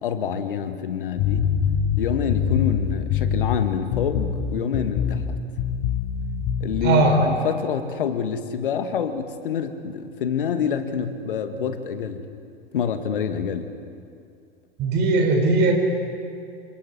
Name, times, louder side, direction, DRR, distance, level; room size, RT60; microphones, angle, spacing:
voice 1, 0.0-1.5 2.0-5.4 6.6-12.2 12.7-13.7, left 7 dB, 65° left, 9 dB, 1.7 m, -27 dB
sound 1, 1.2-3.6 3.9-4.4 4.7-5.3 5.6-6.7, left 8 dB, 40° left, 1.6 m, -24 dB
voice 2, 6.8-7.2 14.8-15.7, right 3 dB, 35° right, 2 dB, 4.8 m, -18 dB
27.5 x 26.5 x 4.3 m, 2.3 s
figure-of-eight pair, 90°, 29 cm